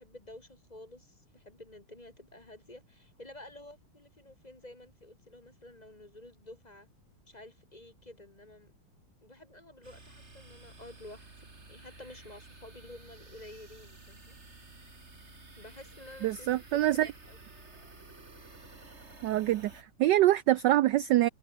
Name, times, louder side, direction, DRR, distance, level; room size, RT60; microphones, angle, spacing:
voice 1, 0.0-6.9 7.3-8.7 9.2-14.4 15.6-17.4, left 1 dB, 20° left, 2.3 m, -51 dB
sound 1, 9.8-19.8, right 3 dB, 30° right, 3.7 m, -52 dB
voice 2, 16.2-17.1 19.2-21.3, right 14 dB, 75° right, 1.0 m, -25 dB
omnidirectional pair, 2.4 m